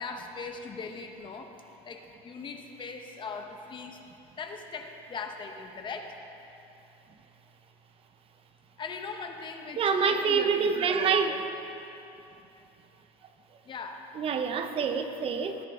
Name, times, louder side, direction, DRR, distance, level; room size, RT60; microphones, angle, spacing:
voice 1, 0.0-1.5 1.8-4.0 4.4-6.1 8.8-11.4 13.6-14.0, left 4 dB, 35° left, 4 dB, 1.2 m, -40 dB
voice 2, 9.8-11.4 14.2-15.6, right 6 dB, 40° right, 7 dB, 0.8 m, -26 dB
18.5 x 10.5 x 3.8 m, 2.8 s
supercardioid pair, 110°, 14 cm